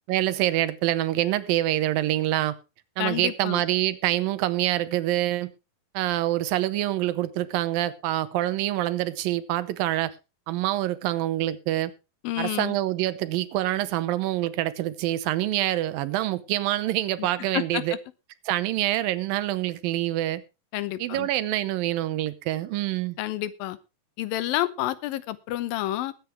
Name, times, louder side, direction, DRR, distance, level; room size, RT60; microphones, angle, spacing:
voice 1, 0.1-2.6 3.0-5.5 5.9-10.1 10.5-11.9 12.4-18.0 18.5-20.4 21.0-23.2, right 14 dB, 80° right, 2.6 m, -26 dB
voice 2, 3.0-3.6 12.2-12.8 17.2-17.3 17.5-17.8 20.7-21.3 23.2-23.8 24.2-26.1, left 15 dB, 85° left, 2.6 m, -29 dB
20.5 x 8.9 x 3.3 m
omnidirectional pair, 4.0 m